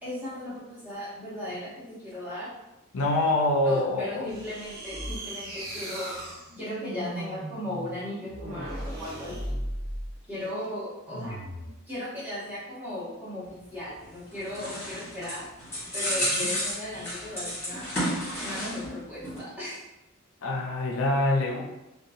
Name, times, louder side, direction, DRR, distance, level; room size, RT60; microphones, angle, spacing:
voice 1, 0.0-2.5 3.6-6.2 6.6-9.7 10.3-11.4 11.9-15.5 15.9-18.0 18.4-19.8, left 1 dB, 10° right, -9 dB, 0.8 m, -37 dB
voice 2, 2.9-4.3 16.3-16.5 20.4-21.6, left 2 dB, 70° left, -1 dB, 0.5 m, -25 dB
sound 1, 4.3-10.2 11.1-11.7, right 1 dB, 45° right, 0.9 m, -37 dB
sound 2, 14.0-19.0 19.2-19.4, equal, 10° left, 1.2 m, -31 dB
2.7 x 2.3 x 2.5 m, 0.95 s
head